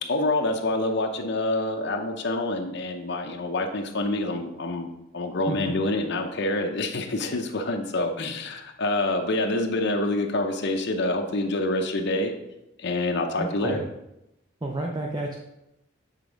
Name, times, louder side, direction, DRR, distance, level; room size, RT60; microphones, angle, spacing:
voice 1, 0.1-4.9 5.1-12.3 12.8-13.8, left 2 dB, 55° left, 3 dB, 0.7 m, -27 dB
voice 2, 13.4-13.9 14.6-15.3, right 1 dB, 20° right, 0 dB, 0.5 m, -30 dB
7.4 x 3.5 x 5.0 m, 0.88 s
head